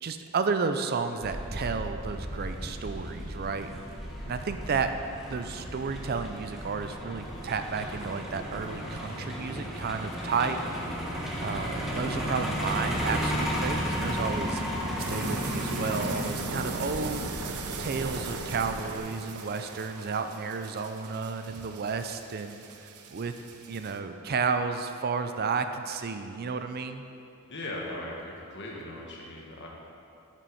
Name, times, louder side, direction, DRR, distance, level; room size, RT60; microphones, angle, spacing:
voice 1, 0.0-3.7 4.3-4.9 5.2-10.6 11.4-14.6 15.1-17.3 17.8-22.6 23.1-23.3 23.7-27.0, right 5 dB, 45° right, 8 dB, 0.4 m, -32 dB
Truck, 1.2-19.0, equal, ahead, 1.4 m, -34 dB
sound 1, 15.0-24.0, right 4 dB, 80° right, 0.7 m, -39 dB
voice 2, 27.5-29.7, left 1 dB, 55° left, -2 dB, 1.7 m, -38 dB
11.0 x 6.1 x 5.5 m, 2.6 s
head